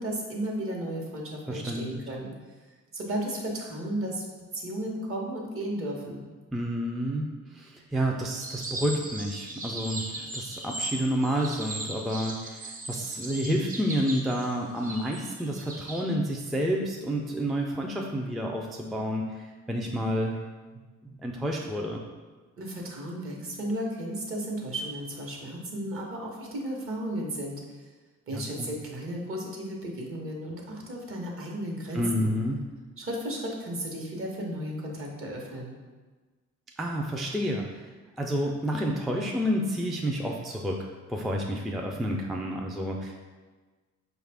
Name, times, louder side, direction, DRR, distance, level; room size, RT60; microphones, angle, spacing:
voice 1, 0.0-2.3 2.9-4.2 4.5-6.3 22.6-27.6 28.3-32.3 33.0-35.8, right 1 dB, 45° right, -1 dB, 1.0 m, -34 dB
voice 2, 1.5-2.0 6.5-20.4 21.0-22.0 28.3-28.7 31.9-32.6 36.8-37.9 38.2-43.1, equal, ahead, 0 dB, 0.3 m, -30 dB
sound 1, 8.4-16.0, right 2 dB, 30° right, 0.7 m, -38 dB
4.9 x 2.4 x 3.4 m, 1.3 s
cardioid pair, 90°, 30 cm